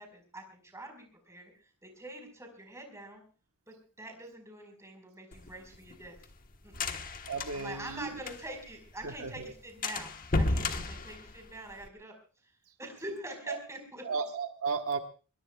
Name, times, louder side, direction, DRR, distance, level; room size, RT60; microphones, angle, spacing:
voice 1, 0.0-3.2 3.7-6.2 6.6-7.2 7.5-12.1 12.4-12.5 12.8-14.0, right 1 dB, 15° right, 4 dB, 4.8 m, -45 dB
sound 1, 5.3-8.7 9.0-9.1 9.4-9.5 9.8-11.9, left 2 dB, 40° left, 1.2 m, -33 dB
voice 2, 7.3-8.2 9.0-9.5 13.5-13.6 14.0-15.0, right 5 dB, 75° right, 5 dB, 1.3 m, -34 dB
22.5 x 21.5 x 2.3 m, 0.38 s
head